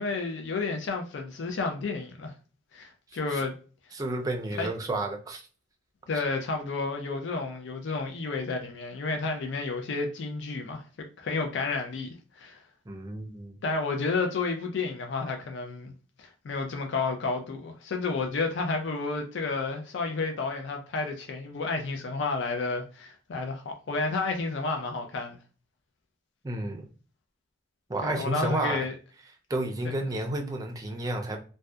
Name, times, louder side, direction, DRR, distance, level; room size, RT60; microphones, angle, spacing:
voice 1, 0.0-2.3 2.7-3.5 4.6-4.7 6.1-10.8 11.2-12.6 13.6-15.9 16.2-25.4 28.0-28.9, left 3 dB, 75° left, 0.4 m, -31 dB
voice 2, 3.9-5.4 6.1-6.2 12.9-13.6 26.4-26.9 27.9-28.9 29.5-31.4, right 2 dB, 20° right, 0.4 m, -31 dB
2.6 x 2.1 x 2.2 m
head